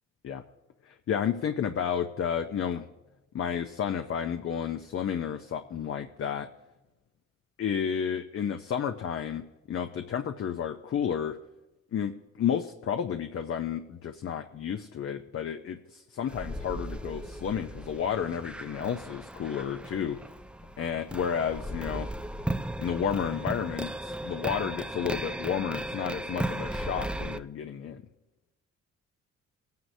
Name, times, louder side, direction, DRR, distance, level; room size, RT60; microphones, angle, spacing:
voice 1, 0.9-2.9 3.3-6.5 7.6-11.4 11.9-20.2 20.8-22.1 22.8-28.0, left 8 dB, 50° left, 7 dB, 0.7 m, -31 dB
sound 1, 16.3-27.4, right 1 dB, 5° right, 0.3 m, -36 dB
20.0 x 9.4 x 2.7 m, 1.0 s
cardioid pair, 90°, 30 cm